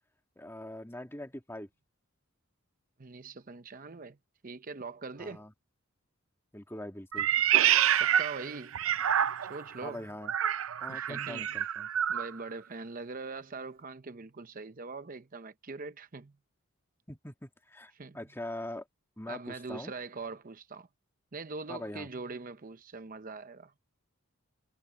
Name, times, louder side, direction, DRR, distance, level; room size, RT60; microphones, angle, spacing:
voice 1, 0.4-1.7 5.2-5.5 6.5-7.3 9.8-10.3 10.8-11.9 17.1-18.9 19.2-19.9 21.7-22.1, left 1 dB, 10° left, 1.9 m, -42 dB
voice 2, 3.0-4.2 4.4-5.4 8.0-8.8 9.4-10.1 10.9-11.6 12.1-16.4 17.9-18.2 19.3-20.9 21.3-23.7, right 4 dB, 40° right, 0.7 m, -42 dB
Meow, 7.1-9.7 10.2-12.3, right 10 dB, 75° right, 0.5 m, -27 dB
head